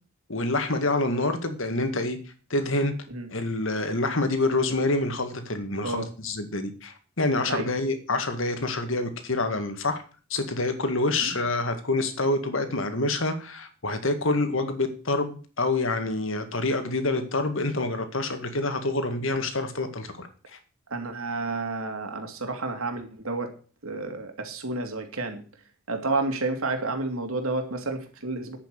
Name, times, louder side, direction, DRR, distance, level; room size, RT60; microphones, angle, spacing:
voice 1, 0.3-2.2 2.5-2.9 3.3-10.0 10.3-20.6, left 2 dB, 65° left, 8 dB, 2.0 m, -27 dB
voice 2, 20.9-23.5 23.8-25.4 25.9-28.6, right 3 dB, 80° right, 5 dB, 2.8 m, -30 dB
10.5 x 8.3 x 6.7 m, 0.39 s
head